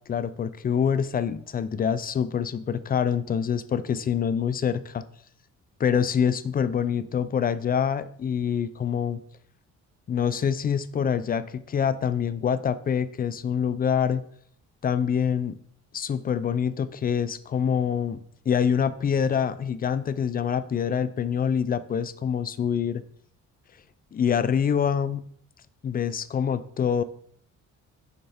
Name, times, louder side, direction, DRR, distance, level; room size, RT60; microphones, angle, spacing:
voice 1, 0.1-5.0 5.8-9.2 10.1-14.2 14.8-15.6 15.9-18.2 18.5-23.0 24.1-25.2 25.8-27.0, left 7 dB, 30° left, 14 dB, 0.4 m, -25 dB
6.6 x 3.3 x 4.3 m, 0.63 s
cardioid pair, 90°, 30 cm